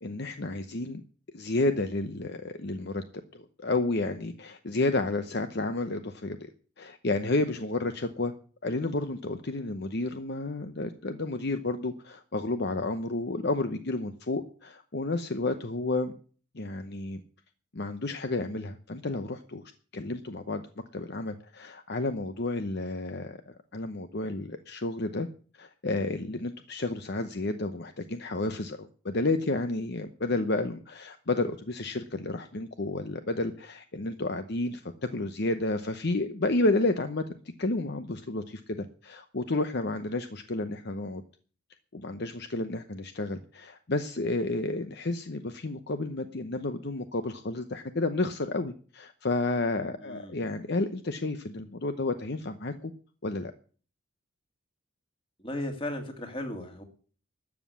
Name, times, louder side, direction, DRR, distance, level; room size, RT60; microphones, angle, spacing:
voice 1, 0.0-1.0 1.3-3.0 3.3-6.5 6.8-8.3 8.6-16.1 16.5-17.2 17.7-19.6 19.9-20.6 20.9-25.3 25.5-34.8 35.1-37.2 37.6-41.2 41.9-52.9 53.2-53.5, left 2 dB, 50° left, 9 dB, 0.8 m, -31 dB
voice 2, 50.0-50.6 55.4-56.8, left 1 dB, 25° left, 4 dB, 2.3 m, -36 dB
13.0 x 7.4 x 8.4 m, 0.42 s
head